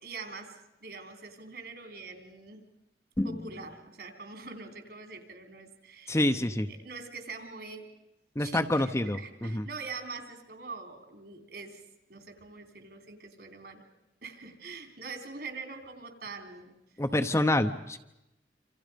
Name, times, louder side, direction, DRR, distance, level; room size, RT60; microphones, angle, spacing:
voice 1, 0.0-2.6 3.2-6.3 6.7-8.0 8.4-11.8 12.1-13.8 14.2-16.8, right 4 dB, 65° right, 5 dB, 3.8 m, -44 dB
voice 2, 3.2-3.5 6.1-6.7 8.4-9.7 17.0-18.0, left 1 dB, 15° left, 7 dB, 0.8 m, -27 dB
27.5 x 27.5 x 5.3 m, 0.90 s
head